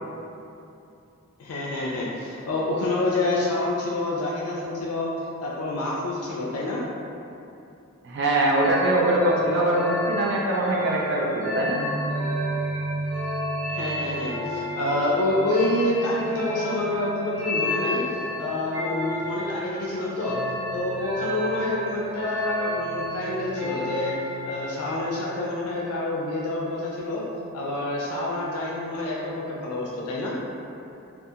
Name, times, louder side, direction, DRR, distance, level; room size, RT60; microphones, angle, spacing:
voice 1, 1.4-5.1 5.4-6.8 13.7-18.0 18.4-20.4 20.7-24.2 24.5-27.2 27.5-30.3, left 2 dB, 80° left, -4 dB, 0.4 m, -27 dB
voice 2, 8.0-11.8, right 1 dB, 50° right, -3 dB, 0.4 m, -22 dB
sound 1, 8.5-25.0, equal, 20° right, 0.8 m, -31 dB
2.4 x 2.3 x 2.7 m, 2.7 s
head